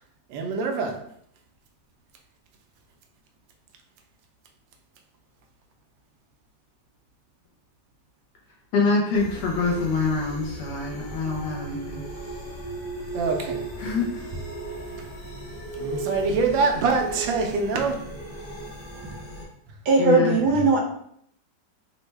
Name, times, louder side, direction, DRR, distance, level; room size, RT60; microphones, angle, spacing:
voice 1, 0.3-1.0 13.1-13.6 15.8-18.0, right 4 dB, 90° right, 3 dB, 1.3 m, -24 dB
voice 2, 8.7-12.1 13.8-14.3 20.0-20.4, left 4 dB, 75° left, -2 dB, 1.2 m, -25 dB
sound 1, 9.1-19.4, right 2 dB, 45° left, 0.7 m, -36 dB
voice 3, 19.9-20.8, right 3 dB, 70° right, 0 dB, 1.1 m, -19 dB
3.3 x 2.1 x 3.2 m, 0.69 s
omnidirectional pair, 2.0 m